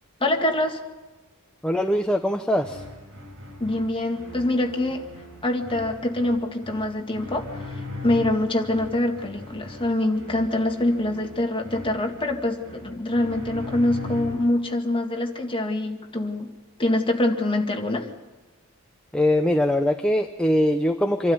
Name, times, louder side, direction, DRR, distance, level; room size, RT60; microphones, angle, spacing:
voice 1, 0.2-0.8 3.6-5.0 5.4-7.7 8.0-16.5 16.8-18.0, left 1 dB, 25° left, 2 dB, 2.0 m, -24 dB
voice 2, 1.6-2.8 19.1-21.3, left 1 dB, 5° left, 4 dB, 0.7 m, -22 dB
sound 1, 2.6-14.6, left 2 dB, 60° right, 6.8 m, -39 dB
26.5 x 12.5 x 9.5 m, 1.2 s
head